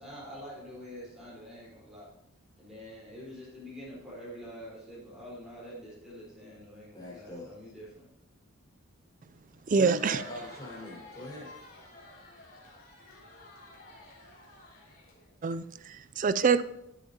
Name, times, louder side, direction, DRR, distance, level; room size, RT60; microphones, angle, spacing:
voice 1, 0.0-2.1 2.6-8.1, equal, ahead, -8 dB, 4.2 m, -46 dB
voice 2, 6.9-7.5 9.7-11.5, left 1 dB, 20° left, -5 dB, 4.8 m, -41 dB
Crowd, 9.5-15.5, left 2 dB, 40° left, 4.1 m, -52 dB
voice 3, 9.7-10.2 15.4-16.6, right 5 dB, 35° right, 14 dB, 0.4 m, -26 dB
17.0 x 8.2 x 2.9 m, 0.81 s
head